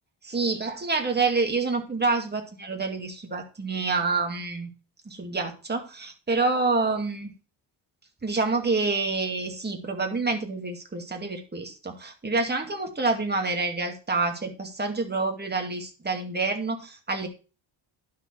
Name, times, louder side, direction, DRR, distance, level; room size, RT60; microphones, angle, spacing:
voice 1, 0.2-4.7 5.0-7.3 8.2-17.3, right 3 dB, 20° right, 3 dB, 2.3 m, -27 dB
11.5 x 6.6 x 4.5 m, 0.33 s
cardioid pair, 135°, 46 cm